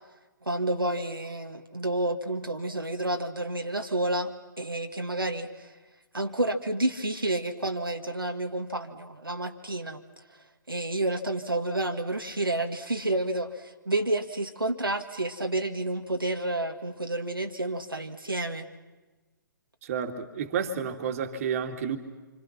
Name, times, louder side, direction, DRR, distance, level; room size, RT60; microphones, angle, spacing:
voice 1, 0.4-5.7 6.1-10.0 10.7-18.7, right 1 dB, 90° right, 4 dB, 2.0 m, -30 dB
voice 2, 19.8-22.0, right 7 dB, 40° right, 5 dB, 2.6 m, -30 dB
28.0 x 26.0 x 6.0 m, 1.2 s
figure-of-eight pair, 130°, 11 cm